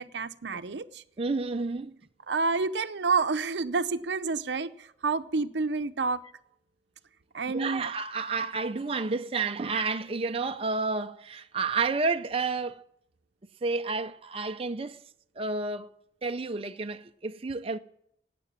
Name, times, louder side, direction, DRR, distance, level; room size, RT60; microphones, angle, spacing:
voice 1, 0.0-1.0 2.3-6.2 7.3-7.9, right 4 dB, 70° right, 0.7 m, -29 dB
voice 2, 1.2-1.9 7.5-12.8 13.6-15.0 15.4-15.9 16.2-17.8, right 4 dB, 30° right, 0.5 m, -30 dB
18.5 x 7.6 x 7.2 m
head